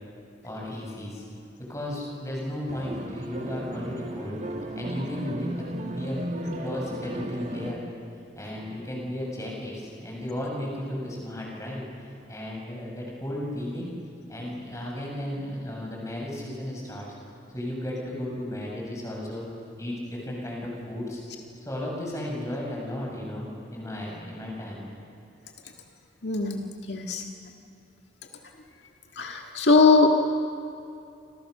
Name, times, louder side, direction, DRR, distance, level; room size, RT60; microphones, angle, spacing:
voice 1, 0.4-1.2 1.6-4.4 4.8-6.2 6.6-7.8 8.3-13.9 14.3-17.1 17.5-19.5 19.8-21.2 21.7-24.9, left 1 dB, 15° left, -2 dB, 7.3 m, -34 dB
sound 1, 2.7-7.7, right 1 dB, 40° right, 1.9 m, -35 dB
voice 2, 26.2-27.2 29.2-30.1, left 4 dB, 70° left, 2 dB, 1.8 m, -21 dB
29.0 x 26.5 x 6.7 m, 2.6 s
head